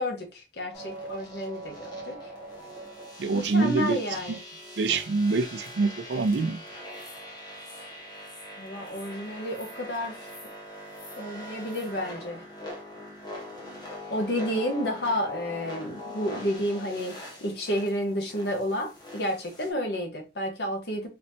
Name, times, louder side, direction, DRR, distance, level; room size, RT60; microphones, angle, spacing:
voice 1, 0.0-2.2 3.3-4.4 8.6-10.3 11.2-12.4 14.1-17.2 17.4-21.1, equal, 70° left, 1.1 m, -31 dB
sound 1, 0.7-19.7, left 1 dB, 25° left, 1.1 m, -42 dB
voice 2, 3.2-4.0 4.3-4.4 4.8-6.6, right 3 dB, 80° right, 0.5 m, -25 dB
4.1 x 3.2 x 2.7 m
head